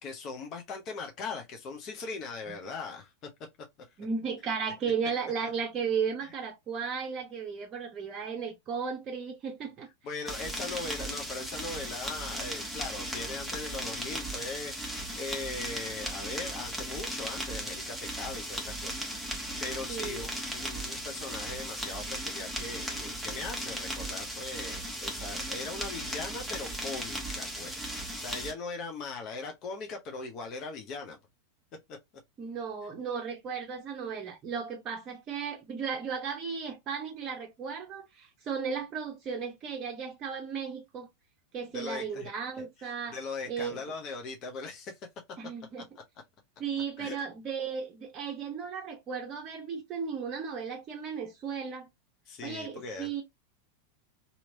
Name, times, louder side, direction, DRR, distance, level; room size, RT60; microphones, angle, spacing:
voice 1, 0.0-3.1 3.8-3.9 10.0-19.0 19.3-27.7 28.2-31.2 31.9-32.0 41.7-42.3 42.8-45.0 47.0-47.2 52.3-53.1, left 3 dB, 35° left, 0.7 m, -40 dB
voice 2, 4.0-9.9 19.9-20.2 32.4-41.1 41.5-43.2 43.5-43.8 45.4-45.9 46.6-51.9 52.4-53.2, right 6 dB, 30° right, 0.7 m, -35 dB
sound 1, 10.3-28.5, right 1 dB, ahead, 1.1 m, -37 dB
2.9 x 2.8 x 2.7 m
figure-of-eight pair, 90°, 0 cm